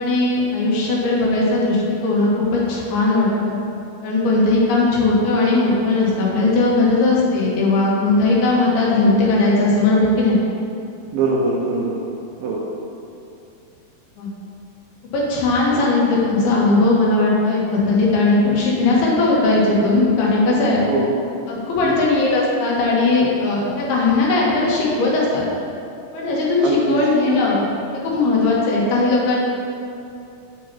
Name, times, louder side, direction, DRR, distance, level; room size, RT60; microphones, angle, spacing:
voice 1, 0.0-3.6 4.0-10.4 14.2-14.3 15.1-20.8 21.5-25.4 26.1-27.6 27.9-29.4, left 2 dB, 80° left, -5 dB, 3.2 m, -18 dB
voice 2, 11.1-12.0 12.4-12.6 15.7-15.8 20.9-21.3 21.8-21.9 26.6-27.0, right 3 dB, 75° right, -4 dB, 2.1 m, -22 dB
8.3 x 8.2 x 2.9 m, 2.6 s
omnidirectional pair, 4.6 m